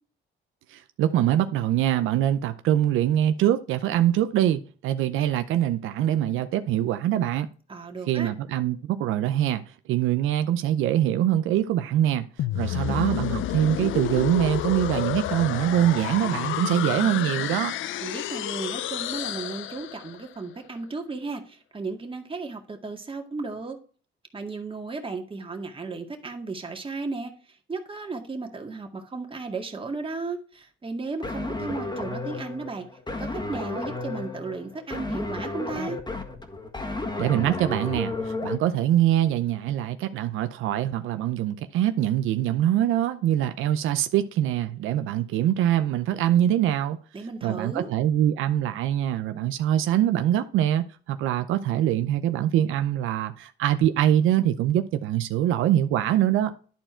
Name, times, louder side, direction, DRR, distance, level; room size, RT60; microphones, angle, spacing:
voice 1, 0.7-7.5 8.1-9.6 9.9-12.3 12.5-17.7 37.2-47.0 47.4-56.5, right 11 dB, 90° right, 0.7 m, -24 dB
voice 2, 7.7-8.3 18.0-23.8 24.3-27.3 27.7-32.9 33.2-36.0 47.1-47.9, right 3 dB, 25° right, 2.0 m, -34 dB
sound 1, 12.4-20.3, left 13 dB, 80° left, 0.5 m, -30 dB
sound 2, 31.2-38.6, left 2 dB, 20° left, 1.7 m, -33 dB
11.5 x 4.5 x 4.4 m
cardioid pair, 90°, 20 cm